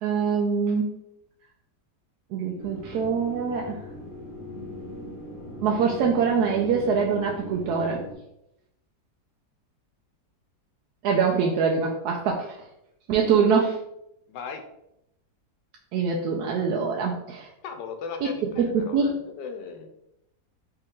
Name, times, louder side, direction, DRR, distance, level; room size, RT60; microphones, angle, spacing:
voice 1, 0.0-0.9 2.3-3.8 5.6-8.0 11.0-12.6 13.1-13.8 15.9-17.5 18.2-19.2, right 5 dB, 75° right, 0 dB, 1.1 m, -24 dB
sound 1, 2.6-8.1, left 1 dB, 40° left, 1.3 m, -40 dB
voice 2, 14.3-14.6 17.6-19.9, left 5 dB, 80° left, 6 dB, 1.2 m, -37 dB
4.4 x 2.9 x 3.6 m, 0.81 s
omnidirectional pair, 1.8 m